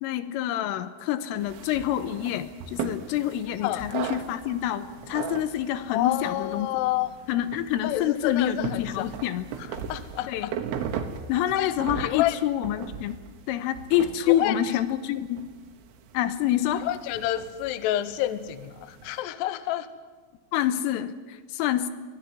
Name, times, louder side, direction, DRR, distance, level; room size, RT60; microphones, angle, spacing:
voice 1, 0.0-6.7 7.3-9.5 10.3-10.5 11.3-13.2 13.5-15.5 16.1-16.9 20.5-21.9, left 11 dB, 90° left, 12 dB, 3.6 m, -27 dB
sound 1, 1.4-19.2, right 7 dB, 85° right, 4.1 m, -39 dB
voice 2, 5.9-7.1 7.8-9.1 9.9-10.5 10.9-11.0 11.5-11.7 12.0-12.4 14.3-14.6 16.8-19.9, left 14 dB, 70° left, 13 dB, 2.7 m, -28 dB
22.5 x 17.0 x 9.6 m, 1.3 s
omnidirectional pair, 5.8 m